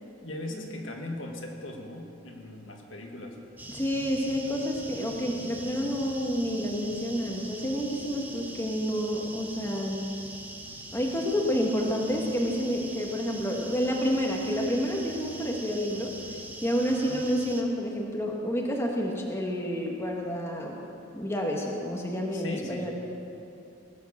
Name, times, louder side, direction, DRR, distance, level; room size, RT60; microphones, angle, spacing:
voice 1, 0.2-3.4 16.8-17.2 22.3-22.9, left 1 dB, 65° left, 1 dB, 1.8 m, -39 dB
sound 1, 3.6-17.6, right 1 dB, 10° right, 1.1 m, -43 dB
voice 2, 3.7-10.0 10.9-16.1 16.6-20.8 21.1-22.9, equal, 15° left, -1 dB, 1.5 m, -29 dB
18.5 x 9.2 x 7.3 m, 2.7 s
head